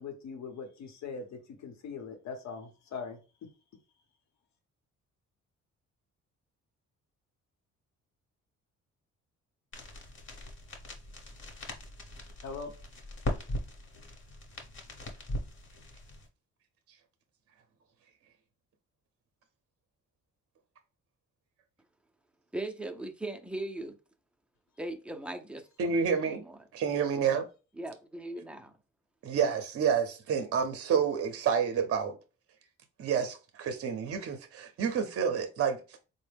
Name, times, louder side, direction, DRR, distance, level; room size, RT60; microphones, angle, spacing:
voice 1, 0.0-3.5 12.4-12.7, left 5 dB, 65° left, 0.9 m, -41 dB
sound 1, 9.7-16.3, left 1 dB, 40° left, 1.0 m, -40 dB
voice 2, 22.5-24.0 24.8-25.6 26.2-26.6 27.8-28.7, right 1 dB, 5° right, 0.5 m, -38 dB
voice 3, 25.8-26.4 26.7-27.4 29.2-32.2 33.0-36.0, right 7 dB, 50° right, 0.6 m, -29 dB
3.9 x 2.1 x 3.4 m
cardioid pair, 90°, 30 cm